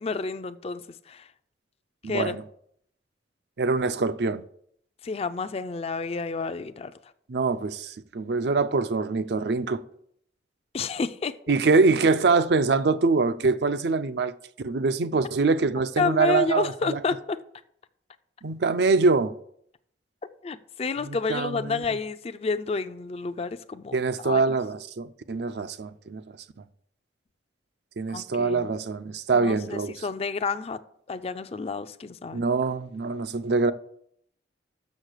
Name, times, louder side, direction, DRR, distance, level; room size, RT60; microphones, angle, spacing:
voice 1, 0.0-1.3 2.1-2.4 5.0-6.9 10.7-11.3 16.0-17.4 20.4-23.9 24.2-24.6 28.1-28.7 29.3-30.8 31.1-32.5, left 4 dB, 35° left, 0.4 m, -30 dB
voice 2, 2.0-2.4 3.6-4.4 7.3-9.8 11.5-17.0 18.4-19.3 21.0-21.8 23.9-26.2 28.0-30.0 32.3-33.7, right 4 dB, 65° right, 0.5 m, -24 dB
6.5 x 6.4 x 6.4 m
head